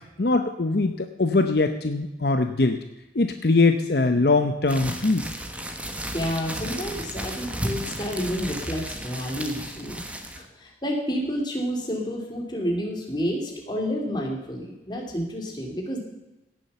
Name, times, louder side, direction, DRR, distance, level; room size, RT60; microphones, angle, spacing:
voice 1, 0.2-2.8 3.1-5.3, left 3 dB, 60° left, 7 dB, 0.7 m, -22 dB
sound 1, 4.7-10.5, right 1 dB, 5° right, 1.2 m, -34 dB
voice 2, 6.1-10.0 10.3-16.0, equal, 25° left, 0 dB, 2.8 m, -30 dB
17.0 x 7.3 x 6.9 m, 0.96 s
head